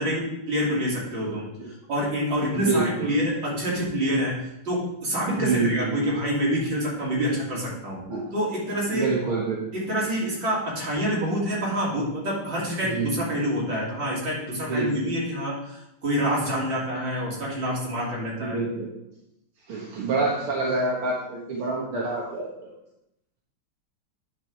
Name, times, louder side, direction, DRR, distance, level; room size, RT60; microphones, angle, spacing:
voice 1, 0.0-8.0 8.3-9.1 9.7-18.6, equal, 65° right, -6 dB, 3.6 m, -27 dB
voice 2, 2.6-3.1 5.4-6.0 8.1-8.2 8.9-9.6 12.8-13.1 14.7-15.1 18.4-18.9 19.7-22.5, right 3 dB, 85° right, -4 dB, 2.2 m, -26 dB
9.8 x 4.9 x 4.8 m, 0.83 s
omnidirectional pair, 2.3 m